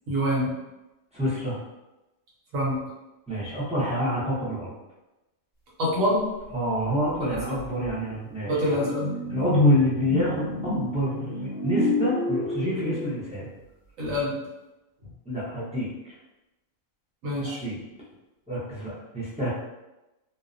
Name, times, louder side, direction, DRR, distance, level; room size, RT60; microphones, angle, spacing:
voice 1, 0.1-0.5 2.5-2.8 5.8-6.2 7.2-7.6 8.5-9.0 14.0-14.4 17.2-17.6, equal, 80° right, -4 dB, 1.2 m, -26 dB
voice 2, 1.1-1.6 3.3-4.7 6.5-8.6 9.3-13.5 15.3-16.1 17.6-17.8 18.5-19.5, equal, 10° right, -10 dB, 0.3 m, -28 dB
sound 1, 6.9-7.0 7.3-13.5, left 2 dB, 30° left, 1.0 m, -28 dB
2.6 x 2.0 x 2.5 m, 1.0 s
omnidirectional pair, 1.4 m